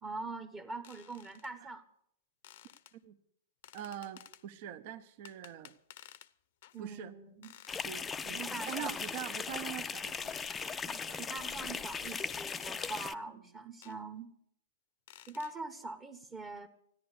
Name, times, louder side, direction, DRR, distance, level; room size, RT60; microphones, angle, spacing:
voice 1, 0.0-1.8 6.7-7.5 8.2-9.0 11.2-14.3 15.3-16.7, right 3 dB, 15° right, 7 dB, 1.1 m, -43 dB
sound 1, 0.8-1.5 2.4-2.9 3.6-4.4 5.2-6.3 6.6-6.8 7.4-7.9 8.6-9.2 10.3-10.8 11.9-13.0 13.8-14.0 15.1-15.6, left 13 dB, 60° left, 0.7 m, -55 dB
voice 2, 3.7-5.7 6.8-7.1 7.8-10.3 10.8-11.2, right 11 dB, 50° right, 10 dB, 1.0 m, -44 dB
sound 2, 7.7-13.1, left 6 dB, 15° left, 0.5 m, -38 dB
14.0 x 10.5 x 8.1 m, 0.72 s
hypercardioid pair, 135°, 0 cm